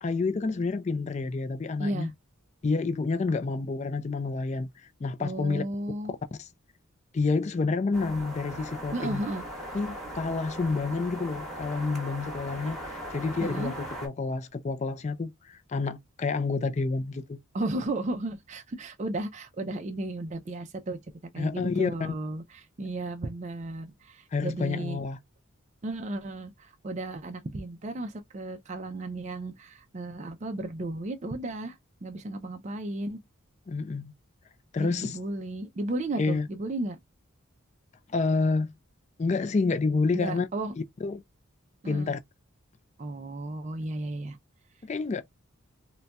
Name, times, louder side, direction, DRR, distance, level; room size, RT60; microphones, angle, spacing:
voice 1, 0.0-2.1 2.6-5.6 6.4-6.5 7.1-9.2 9.7-17.4 21.4-22.1 24.3-25.2 33.7-34.1 34.7-35.2 36.2-36.5 38.1-38.7 39.2-40.5 41.0-41.2 41.9-42.2 44.8-45.2, left 4 dB, 35° left, 0.3 m, -29 dB
voice 2, 1.8-2.1 5.2-6.1 8.9-9.4 13.4-13.7 17.5-21.0 21.3-25.0 25.8-33.2 34.8-37.0 40.1-40.7 41.8-42.1 43.0-44.4, right 2 dB, 35° right, 0.4 m, -34 dB
sound 1, 7.9-14.1, equal, ahead, 1.2 m, -39 dB
3.9 x 2.2 x 2.2 m
head